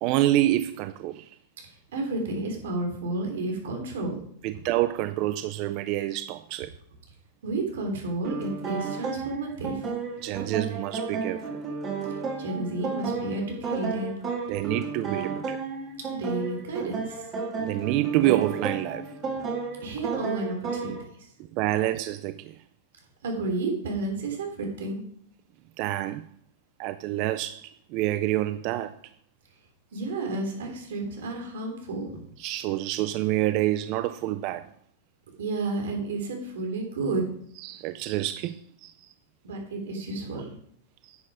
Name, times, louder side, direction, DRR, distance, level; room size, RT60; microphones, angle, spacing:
voice 1, 0.0-1.4 4.4-6.7 10.2-11.6 14.5-15.6 17.6-19.1 21.5-22.6 25.8-26.3 26.8-29.0 32.4-34.7 37.6-39.1 41.0-41.2, right 15 dB, 40° right, 0.4 m, -27 dB
voice 2, 1.9-4.2 7.4-9.8 12.4-14.1 16.1-17.2 19.3-19.4 19.8-21.3 23.2-25.0 29.9-32.1 35.4-37.2 39.4-40.6, right 2 dB, 90° right, 3.2 m, -31 dB
sound 1, 8.2-21.0, right 5 dB, 25° right, 1.9 m, -33 dB
9.8 x 6.7 x 4.9 m
supercardioid pair, 160°, 0 cm